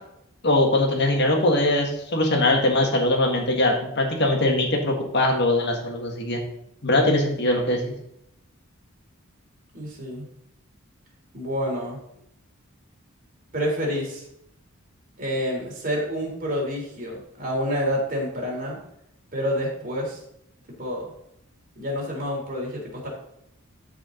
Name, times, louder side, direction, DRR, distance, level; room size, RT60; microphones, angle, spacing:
voice 1, 0.4-6.4 6.8-7.9, left 1 dB, 50° left, 1 dB, 1.8 m, -21 dB
voice 2, 9.7-10.3 11.3-12.0 13.5-14.2 15.2-18.8 19.3-20.2 20.8-21.1 21.8-23.1, equal, 40° right, -2 dB, 3.4 m, -28 dB
13.5 x 5.0 x 3.9 m, 0.77 s
head